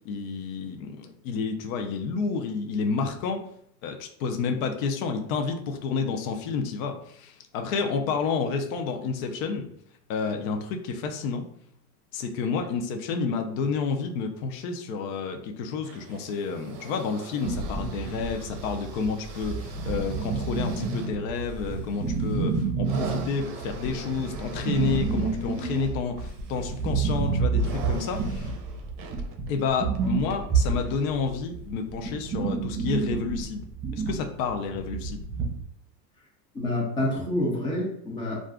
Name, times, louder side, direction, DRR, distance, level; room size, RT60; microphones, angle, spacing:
voice 1, 0.0-3.5 3.8-9.7 10.1-11.4 12.1-28.5 29.5-33.7 33.9-35.2, left 5 dB, 60° left, 5 dB, 0.6 m, -30 dB
sound 1, 15.8-31.3 32.1-32.2, right 5 dB, 55° right, 0.6 m, -44 dB
sound 2, 17.4-35.6, right 4 dB, 25° right, 0.9 m, -29 dB
voice 2, 36.5-38.4, left 1 dB, 10° left, -3 dB, 0.4 m, -27 dB
2.5 x 2.3 x 3.5 m, 0.68 s
supercardioid pair, 145°, 47 cm